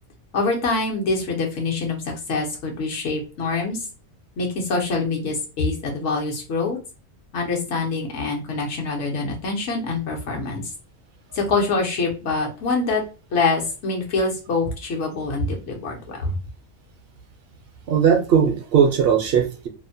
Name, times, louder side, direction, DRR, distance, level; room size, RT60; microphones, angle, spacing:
voice 1, 0.3-3.9 4.4-6.8 7.3-10.6 11.3-13.0 13.3-16.4, left 3 dB, 75° left, 1 dB, 1.1 m, -25 dB
voice 2, 17.9-19.7, right 7 dB, 65° right, 3 dB, 0.7 m, -18 dB
2.6 x 2.1 x 2.6 m, 0.33 s
omnidirectional pair, 1.2 m